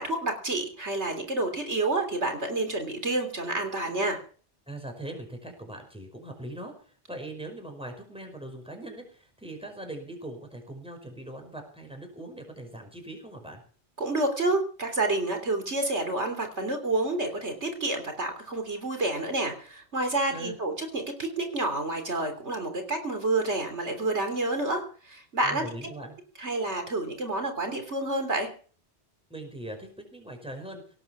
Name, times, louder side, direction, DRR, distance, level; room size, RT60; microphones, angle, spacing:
voice 1, 0.0-4.2 14.0-25.6 26.4-28.5, right 2 dB, 80° right, 5 dB, 3.7 m, -29 dB
voice 2, 4.7-13.6 20.3-20.6 25.4-26.2 29.3-31.0, right 1 dB, 5° right, 4 dB, 5.3 m, -41 dB
18.0 x 9.1 x 7.2 m, 0.42 s
omnidirectional pair, 1.1 m